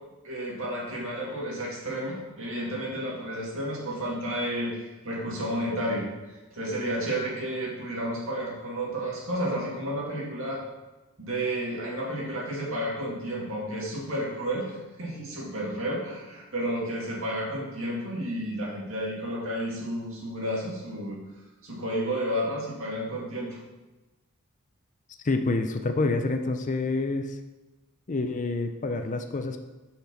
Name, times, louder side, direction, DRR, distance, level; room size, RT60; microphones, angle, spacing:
voice 1, 0.2-10.6 11.2-21.2 21.6-23.6, right 1 dB, 60° right, -3 dB, 2.4 m, -31 dB
voice 2, 25.2-27.4 28.1-29.6, left 3 dB, 35° left, 6 dB, 0.5 m, -27 dB
6.9 x 5.9 x 5.6 m, 1.1 s
head